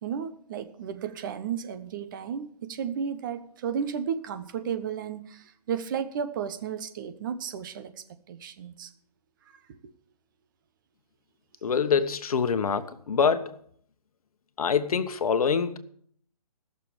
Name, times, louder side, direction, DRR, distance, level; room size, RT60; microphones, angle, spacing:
voice 1, 0.0-8.9 9.5-9.9, right 7 dB, 30° right, 1.0 m, -34 dB
voice 2, 11.6-13.6 14.6-15.8, left 6 dB, 65° left, 1.2 m, -25 dB
15.0 x 6.8 x 7.3 m
hypercardioid pair, 160°, 20 cm